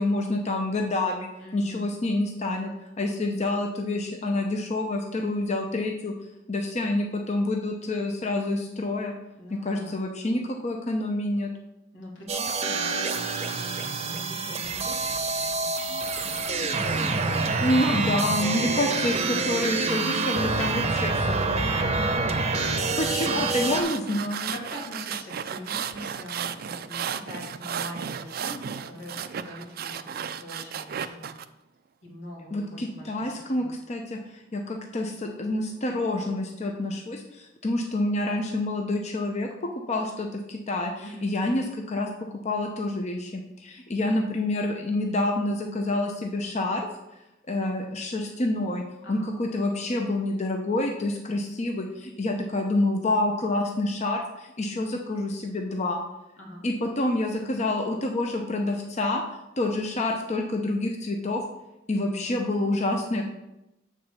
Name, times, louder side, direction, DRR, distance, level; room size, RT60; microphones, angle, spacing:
voice 1, 0.0-2.7 3.0-6.1 6.5-9.1 9.5-11.5 17.6-21.9 23.0-24.5 32.5-39.5 39.9-42.1 42.4-46.9 47.5-48.8 49.1-56.0 56.6-59.2 59.6-61.4 61.9-63.3, left 2 dB, 35° left, 2 dB, 0.7 m, -28 dB
voice 2, 1.4-1.9 9.4-10.0 11.9-20.0 21.9-22.5 24.5-31.3 32.0-33.7 41.0-41.3 49.0-49.3 56.4-56.6, left 1 dB, 90° left, -2 dB, 2.5 m, -43 dB
sound 1, 12.3-23.8, right 3 dB, 35° right, 0.7 m, -27 dB
sound 2, 23.5-31.5, right 8 dB, 55° right, 0.4 m, -34 dB
7.5 x 4.0 x 6.7 m, 0.93 s
head